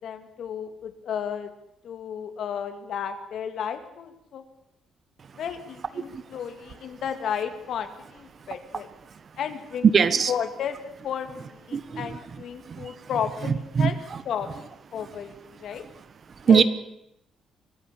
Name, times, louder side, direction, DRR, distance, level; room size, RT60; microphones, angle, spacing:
voice 1, 0.0-1.5 1.8-4.4 5.4-8.9 9.4-9.9 10.3-14.0 14.3-15.8 16.5-16.6, left 8 dB, 70° left, 9 dB, 2.5 m, -33 dB
voice 2, 9.9-10.3 11.7-13.1 13.4-14.2 14.9-15.1 15.5-16.6, right 6 dB, 45° right, 15 dB, 1.3 m, -25 dB
24.0 x 15.0 x 8.6 m, 0.81 s
cardioid pair, 90°, 0 cm